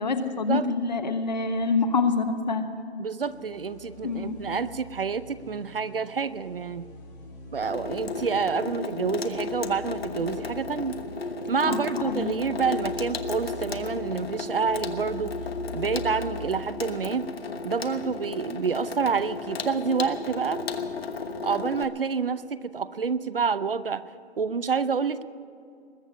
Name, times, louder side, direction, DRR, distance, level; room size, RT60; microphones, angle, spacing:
voice 1, 0.0-2.7 4.0-4.4 11.7-11.8 12.0-12.3, left 4 dB, 40° left, 8 dB, 1.2 m, -26 dB
voice 2, 3.0-6.9 7.5-11.0 11.5-15.3 15.7-17.3 17.6-20.6 21.4-24.0 24.4-25.2, right 5 dB, 60° right, 15 dB, 0.7 m, -28 dB
sound 1, 3.2-16.6, left 1 dB, 10° left, 2.0 m, -44 dB
Water tap faucet / Sink (filling or washing), 7.6-21.8, left 4 dB, 65° left, 1.3 m, -34 dB
21.0 x 7.1 x 9.7 m, 2.4 s
hypercardioid pair, 170°, 32 cm